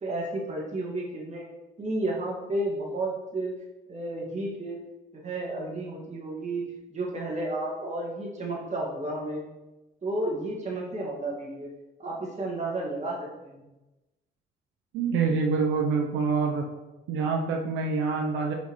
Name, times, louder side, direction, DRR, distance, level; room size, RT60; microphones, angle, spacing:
voice 1, 0.0-1.4 1.8-3.5 3.9-4.8 5.1-6.6 6.9-9.4 10.0-11.7 12.0-13.6, right 2 dB, 35° right, -3 dB, 2.0 m, -32 dB
voice 2, 14.9-16.6 17.1-18.5, right 4 dB, 90° right, 1 dB, 0.7 m, -26 dB
6.1 x 5.4 x 3.2 m, 1.0 s
cardioid pair, 90°, 20 cm